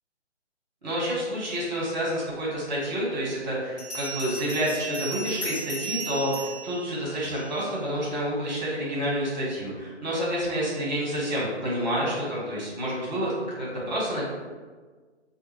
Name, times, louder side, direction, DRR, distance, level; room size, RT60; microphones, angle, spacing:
voice 1, 0.8-14.3, equal, 40° right, -5 dB, 1.2 m, -29 dB
Bell, 3.8-7.7, right 3 dB, 25° left, 1.0 m, -35 dB
4.3 x 2.4 x 3.1 m, 1.4 s
figure-of-eight pair, 140°, 35 cm